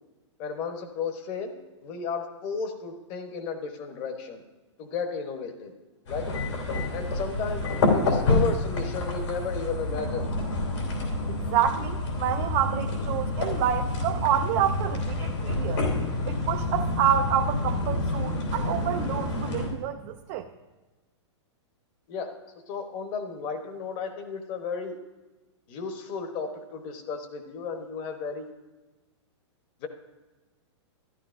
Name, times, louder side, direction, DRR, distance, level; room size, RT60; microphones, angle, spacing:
voice 1, 0.4-1.5 1.8-4.4 4.8-5.7 6.1-6.3 6.9-7.6 7.9-10.3 22.1-22.3 22.7-25.0 25.7-28.5 29.8-29.9, left 5 dB, 30° left, 6 dB, 1.0 m, -33 dB
sound 1, 6.1-19.7, left 2 dB, 75° left, 3.1 m, -28 dB
voice 2, 11.3-15.8 16.3-20.5, right 10 dB, 30° right, 4 dB, 0.4 m, -28 dB
13.5 x 11.5 x 2.5 m, 1.2 s
hypercardioid pair, 155°, 15 cm